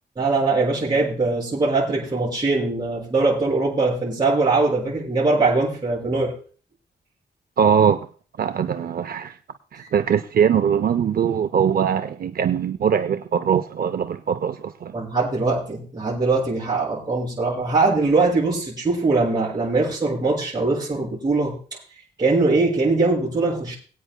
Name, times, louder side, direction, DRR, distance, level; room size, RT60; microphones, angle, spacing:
voice 1, 0.2-6.3 14.9-21.6 22.2-23.8, right 3 dB, 25° right, 5.2 m, -21 dB
voice 2, 7.6-8.1 8.4-9.4 9.7-14.9, right 7 dB, 60° right, 0.5 m, -21 dB
22.5 x 9.0 x 2.2 m
wide cardioid pair, 175°, 18 cm